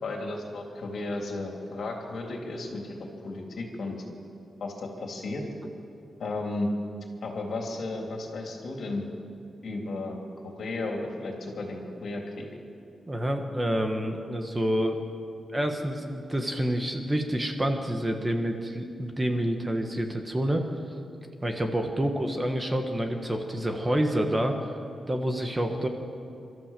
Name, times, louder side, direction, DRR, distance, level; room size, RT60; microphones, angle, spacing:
voice 1, 0.0-4.0 4.6-5.4 6.2-6.7 7.2-9.1 9.6-10.2 10.4-12.5, left 2 dB, 55° left, 1 dB, 3.4 m, -34 dB
voice 2, 13.1-15.0 15.5-20.6 21.4-24.6 25.1-25.9, right 1 dB, 15° right, 4 dB, 1.3 m, -28 dB
27.5 x 13.5 x 7.6 m, 2.5 s
wide cardioid pair, 170°, 0 cm